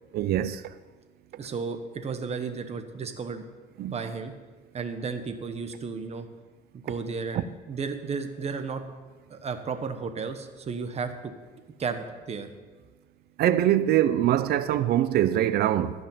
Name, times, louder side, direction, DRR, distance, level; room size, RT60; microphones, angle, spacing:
voice 1, 0.1-0.6 3.8-3.9 7.3-7.4 13.4-15.9, right 12 dB, 70° right, 0.6 m, -23 dB
voice 2, 1.4-3.4 3.8-4.3 4.7-6.3 6.8-8.8 9.3-11.3 11.8-12.5, right 5 dB, 40° right, 1.2 m, -33 dB
14.5 x 5.4 x 7.3 m
cardioid pair, 110°, 17 cm